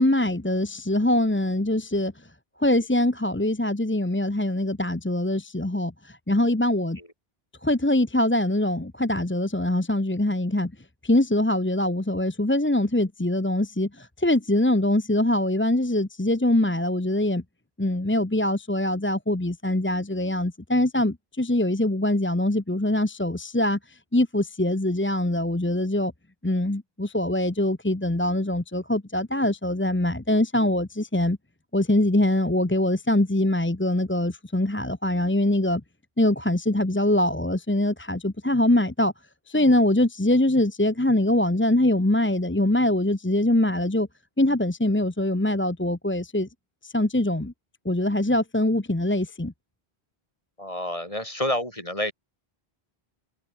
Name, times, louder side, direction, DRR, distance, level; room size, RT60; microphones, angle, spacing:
voice 1, 0.0-2.3 2.6-7.0 7.6-10.7 11.0-17.4 17.8-26.1 26.4-31.4 31.7-35.8 36.2-39.1 39.5-44.1 44.4-46.5 46.8-47.5 47.8-49.5, left 1 dB, 10° left, 1.0 m, -23 dB
voice 2, 50.6-52.1, left 1 dB, 35° left, 6.3 m, -28 dB
omnidirectional pair, 1.0 m